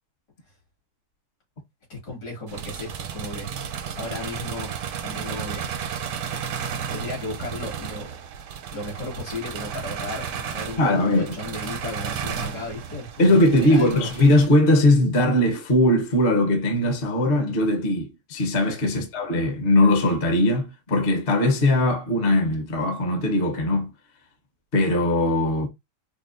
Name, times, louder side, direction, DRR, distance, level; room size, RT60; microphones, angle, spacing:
voice 1, 1.9-4.7 5.0-5.7 6.9-8.2 8.7-14.1 18.9-19.0, left 2 dB, 70° left, 3.0 m, -35 dB
sound 1, 2.5-14.5, right 7 dB, 85° right, 1.3 m, -33 dB
voice 2, 10.8-11.3 13.2-23.9 24.7-25.7, left 1 dB, 45° left, 0.8 m, -20 dB
5.0 x 2.3 x 2.5 m
omnidirectional pair, 1.8 m